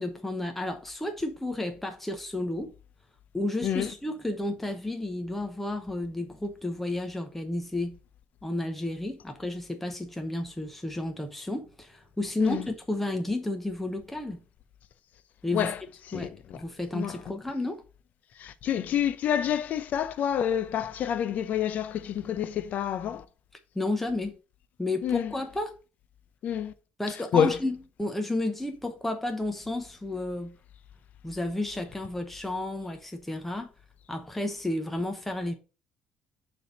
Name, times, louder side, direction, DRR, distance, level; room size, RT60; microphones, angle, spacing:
voice 1, 0.0-2.7 3.3-8.0 8.4-14.4 15.4-15.7 16.1-17.8 23.7-24.4 24.8-25.7 27.0-30.6 31.2-33.7 34.1-35.5, left 2 dB, 5° left, 0.8 m, -32 dB
voice 2, 16.1-16.6 16.9-17.2 18.4-23.2 25.0-25.3 26.4-26.7 27.3-27.6, left 9 dB, 55° left, 0.6 m, -28 dB
6.9 x 3.5 x 5.3 m
cardioid pair, 140°, 3 cm